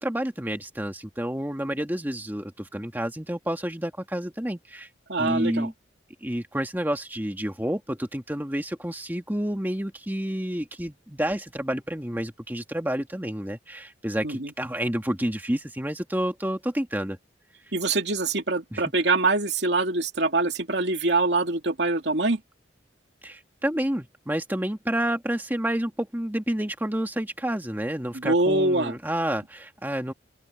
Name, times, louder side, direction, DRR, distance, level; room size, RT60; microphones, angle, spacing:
voice 1, 0.0-4.9 5.2-5.7 6.2-17.2 18.7-18.8 23.2-30.1, right 1 dB, 10° right, 1.7 m, -29 dB
voice 2, 5.1-5.7 14.2-14.5 17.7-22.4 28.1-29.0, right 2 dB, 65° right, 2.6 m, -24 dB
open air
head